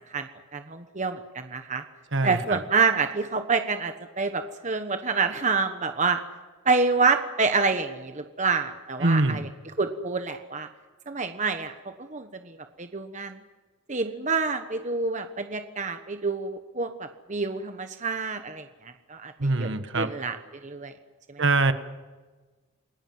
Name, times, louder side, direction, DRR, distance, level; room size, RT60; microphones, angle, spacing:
voice 1, 0.5-1.8 2.2-6.2 6.6-9.5 9.8-10.7 11.1-11.7 12.1-13.4 13.9-18.7 19.1-20.4 20.6-20.9 21.3-21.4, right 4 dB, 35° right, 7 dB, 1.2 m, -27 dB
voice 2, 2.1-2.6 9.0-9.4 19.4-20.1 21.4-21.7, right 2 dB, 60° right, 10 dB, 1.5 m, -23 dB
29.5 x 19.5 x 7.8 m, 1.3 s
head